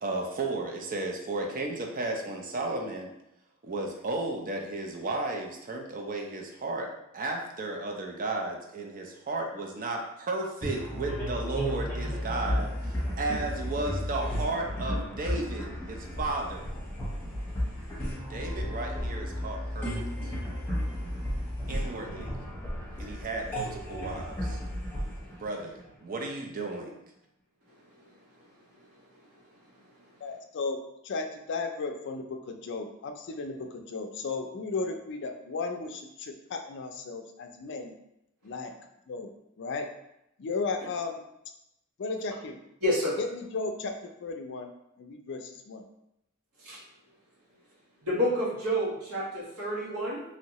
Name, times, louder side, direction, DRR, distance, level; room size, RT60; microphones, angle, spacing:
voice 1, 0.0-3.1 3.6-16.6 18.3-20.3 21.7-22.4 23.0-24.6 25.3-27.0, right 2 dB, 40° right, 2 dB, 0.5 m, -34 dB
sound 1, 10.6-26.3, equal, 10° left, 0.9 m, -33 dB
voice 2, 17.5-17.9 20.9-21.1 22.9-23.0 25.3-25.4 42.8-43.2 46.6-46.8 48.0-50.2, equal, 85° right, -6 dB, 1.2 m, -30 dB
voice 3, 30.2-30.8 31.0-37.9 38.4-38.7 39.1-39.3 39.6-39.9 40.4-41.2 42.0-42.6 43.2-43.9 44.2-44.7 45.0-45.8, left 4 dB, 55° left, 5 dB, 0.4 m, -35 dB
3.1 x 2.7 x 2.9 m, 0.83 s
head